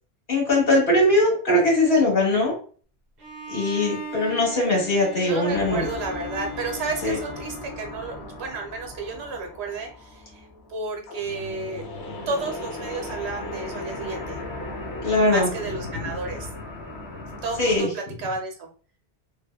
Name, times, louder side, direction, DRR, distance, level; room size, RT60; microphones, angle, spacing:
voice 1, 0.3-2.5 3.5-5.8 7.0-7.1 15.0-15.5 16.0-16.1 17.6-17.9, left 1 dB, 50° left, -3 dB, 1.4 m, -20 dB
Bowed string instrument, 3.2-8.2, left 1 dB, 50° right, 0.7 m, -38 dB
voice 2, 5.2-11.9 12.3-14.4 15.2-16.5 17.4-18.7, right 3 dB, 80° right, 3 dB, 0.9 m, -32 dB
sound 1, 5.5-17.8, left 2 dB, 85° left, 0.9 m, -37 dB
2.8 x 2.1 x 2.2 m, 0.42 s
omnidirectional pair, 1.1 m